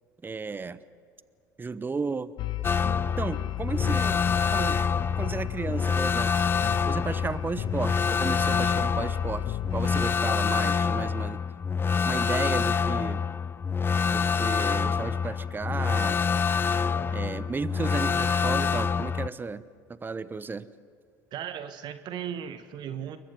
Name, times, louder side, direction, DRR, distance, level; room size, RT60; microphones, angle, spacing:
voice 1, 0.2-0.8 1.6-2.3 3.2-4.2 4.5-4.8 5.2-6.3 6.9-11.4 12.0-13.2 14.1-16.2 17.1-19.6 19.9-20.7, right 4 dB, 20° right, 16 dB, 1.0 m, -33 dB
sound 1, 2.4-10.2, left 15 dB, 55° left, 1.1 m, -35 dB
sound 2, 2.6-19.3, left 6 dB, 25° left, 0.5 m, -26 dB
voice 2, 21.3-23.2, right 9 dB, 50° right, 10 dB, 1.4 m, -36 dB
28.5 x 23.0 x 5.4 m, 2.2 s
figure-of-eight pair, 65°, 10 cm